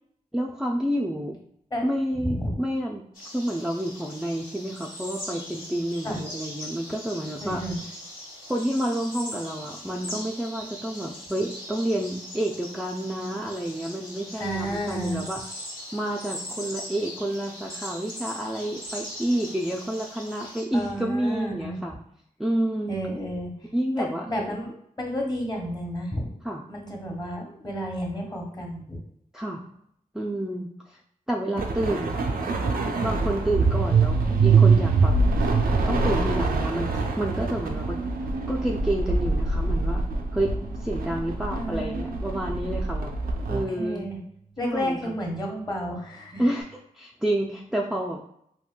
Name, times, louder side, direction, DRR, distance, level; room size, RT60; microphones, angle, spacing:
voice 1, 0.3-1.4 1.8-3.0 3.3-7.6 8.5-15.4 15.9-22.0 22.4-23.0 23.7-24.6 26.4-26.6 29.3-29.6 30.1-31.0 31.3-32.2 33.0-35.1 35.9-38.0 38.5-40.0 40.3-40.5 40.8-43.1 43.5-44.0 44.6-45.1 46.4-48.2, right 1 dB, 5° right, -2 dB, 0.3 m, -29 dB
voice 2, 2.2-2.5 6.0-6.2 7.4-7.8 14.4-15.3 20.7-21.8 22.9-23.5 24.0-24.7 25.0-26.3 26.7-29.0 41.5-42.2 43.7-44.2 44.6-46.4, equal, 30° left, 0 dB, 1.1 m, -31 dB
sound 1, 3.1-20.6, left 1 dB, 75° left, 1.3 m, -40 dB
sound 2, 31.6-43.6, right 4 dB, 85° right, 0.4 m, -24 dB
sound 3, 40.4-46.6, right 3 dB, 45° left, 0.6 m, -48 dB
3.7 x 2.2 x 2.2 m, 0.73 s
cardioid pair, 40°, 15 cm